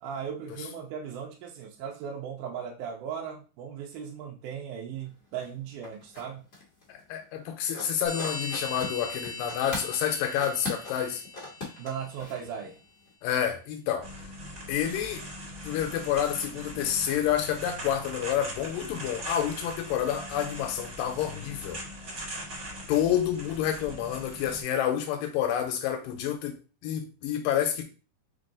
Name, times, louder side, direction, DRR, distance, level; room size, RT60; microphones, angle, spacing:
voice 1, 0.0-6.4 11.6-12.8, right 7 dB, 75° right, 2.0 m, -37 dB
sound 1, 5.1-5.2 5.3-6.3 6.5-7.5 7.7-10.0 10.4-12.8 13.1-13.2, left 3 dB, 35° left, 1.4 m, -39 dB
voice 2, 6.9-11.2 13.2-14.1 14.7-15.3 15.6-21.8 22.9-26.6 26.8-27.8, left 9 dB, 85° left, 2.3 m, -29 dB
sound 2, 8.0-12.3, left 3 dB, 55° left, 1.3 m, -40 dB
sound 3, 14.0-24.6, equal, 40° right, 1.2 m, -41 dB
5.3 x 2.4 x 3.8 m
omnidirectional pair, 4.0 m